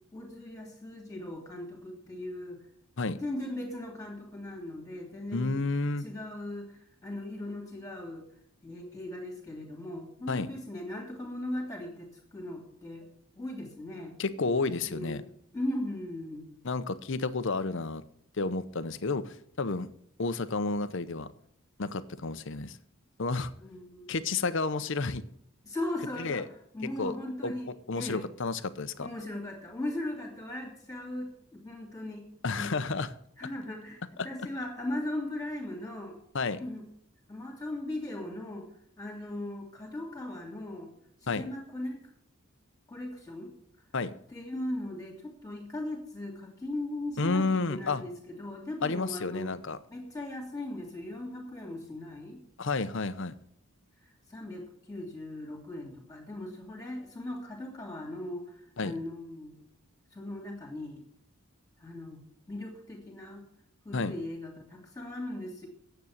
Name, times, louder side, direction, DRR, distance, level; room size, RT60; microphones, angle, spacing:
voice 1, 0.1-2.6 3.1-5.6 6.0-8.3 8.6-13.1 13.3-14.1 14.7-16.5 23.6-24.1 25.6-26.5 26.7-28.3 29.0-32.8 33.4-36.2 36.6-36.8 37.3-38.6 39.0-40.9 41.2-42.0 42.9-43.5 44.3-49.6 49.9-52.4 54.0-59.6 60.1-61.0 61.8-63.4 63.8-65.7, left 1 dB, 15° left, 0 dB, 2.5 m, -38 dB
voice 2, 5.3-6.1 10.3-10.5 14.2-15.2 16.6-18.0 18.4-19.9 20.2-21.3 21.8-22.8 23.2-23.5 24.1-25.2 26.2-26.4 27.0-27.2 27.4-27.5 27.9-29.1 32.4-33.1 36.3-36.6 41.3-41.4 43.9-44.1 47.2-48.0 48.8-49.8 52.6-53.3 58.8-58.9 63.9-64.1, left 3 dB, 55° left, 13 dB, 0.7 m, -31 dB
9.6 x 8.0 x 7.2 m, 0.70 s
head